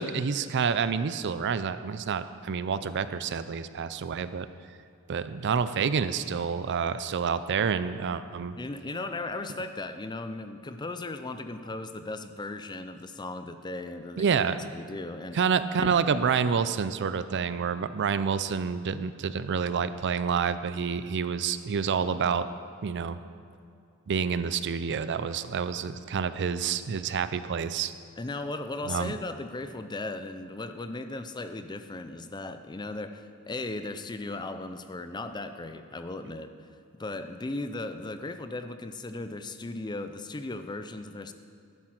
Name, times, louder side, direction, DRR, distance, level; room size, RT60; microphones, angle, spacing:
voice 1, 0.0-4.5 5.1-8.6 14.2-14.6 15.3-22.5 22.8-23.2 24.1-27.9 28.9-29.1, right 6 dB, 55° right, 13 dB, 0.4 m, -28 dB
voice 2, 8.6-14.4 14.7-15.4 15.8-15.9 28.2-36.7 37.0-41.3, left 2 dB, 20° left, 9 dB, 0.5 m, -37 dB
11.5 x 9.2 x 5.9 m, 2.5 s
head